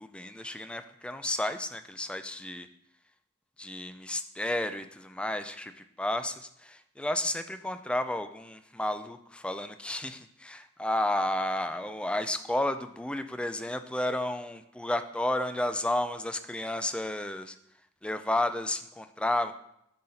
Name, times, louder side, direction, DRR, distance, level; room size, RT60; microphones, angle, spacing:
voice 1, 0.0-2.7 3.6-17.6 18.0-19.5, left 1 dB, 5° left, 10 dB, 0.4 m, -32 dB
10.5 x 4.0 x 4.2 m, 0.77 s
head